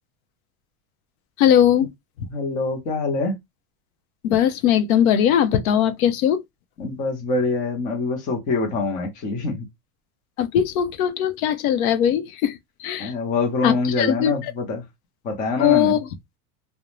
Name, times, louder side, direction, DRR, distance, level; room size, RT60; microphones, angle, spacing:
voice 1, 1.4-1.9 4.2-6.4 10.4-13.1 13.6-14.3 15.6-16.1, left 9 dB, 80° left, 0.6 m, -20 dB
voice 2, 2.3-3.4 6.8-9.6 13.0-14.8 15.2-16.0, left 3 dB, 20° left, 0.4 m, -25 dB
2.4 x 2.1 x 3.0 m
supercardioid pair, 165°, 42 cm